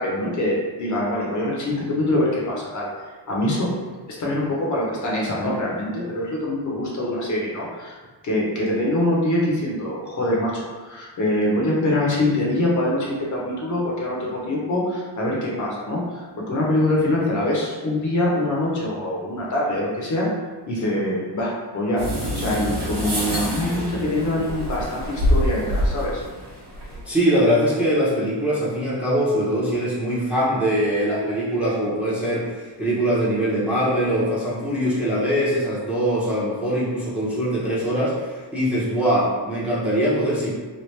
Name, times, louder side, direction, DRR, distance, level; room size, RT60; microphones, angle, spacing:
voice 1, 0.0-2.9 3.3-3.7 4.2-8.0 8.2-20.3 20.7-26.2, left 1 dB, 40° left, -4 dB, 0.8 m, -24 dB
sound 1, 22.0-27.1, equal, 75° right, 1.0 m, -26 dB
voice 2, 27.1-40.5, equal, 5° right, -9 dB, 0.7 m, -22 dB
3.2 x 2.4 x 3.2 m, 1.3 s
cardioid pair, 130°, 43 cm